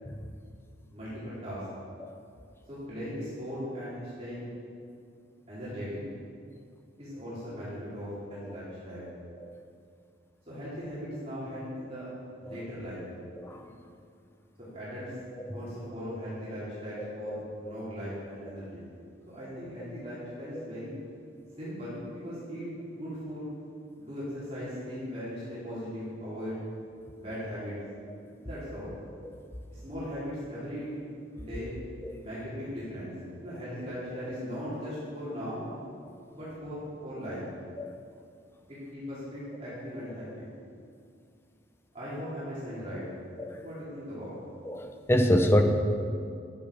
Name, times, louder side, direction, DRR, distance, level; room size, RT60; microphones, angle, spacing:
voice 1, 0.0-0.3 2.0-2.2 8.4-8.6 9.4-9.6 12.4-12.6 13.3-13.8 15.4-15.6 17.0-17.9 20.5-20.6 27.0-27.1 29.2-29.3 32.0-32.2 35.3-35.4 36.0-36.2 37.8-38.0 43.4-43.7 44.6-45.6, equal, 15° left, 5 dB, 0.5 m, -29 dB
voice 2, 0.9-1.6 2.7-4.5 5.5-6.0 7.0-9.1 10.5-12.1 12.4-13.0 14.6-15.1 15.5-18.8 19.3-21.0 21.6-23.5 24.0-26.6 27.1-27.7 28.4-28.9 29.7-30.9 31.3-31.7 32.2-33.1 33.4-35.7 36.3-37.4 38.7-40.5 41.9-43.0 43.5-44.3, equal, 35° right, -11 dB, 2.8 m, -38 dB
10.5 x 7.4 x 5.0 m, 2.4 s
head